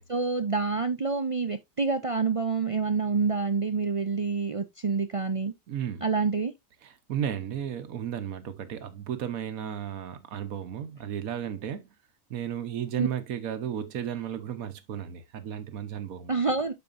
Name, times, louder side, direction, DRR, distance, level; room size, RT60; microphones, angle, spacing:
voice 1, 0.1-5.5 6.0-6.5 13.0-13.1 16.3-16.7, right 4 dB, 55° right, 0.3 m, -27 dB
voice 2, 5.7-6.0 6.8-11.9 12.3-16.3, right 9 dB, 90° right, 1.3 m, -34 dB
12.5 x 4.5 x 2.5 m
omnidirectional pair, 1.4 m